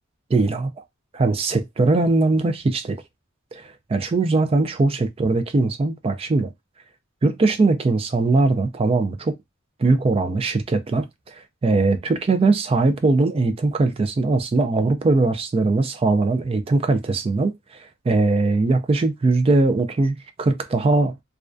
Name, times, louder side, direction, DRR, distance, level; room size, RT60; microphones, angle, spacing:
voice 1, 0.3-0.7 1.1-3.0 3.5-6.5 7.2-9.3 9.8-17.5 18.1-21.2, right 3 dB, 30° right, 0.3 m, -20 dB
2.3 x 2.2 x 2.4 m
head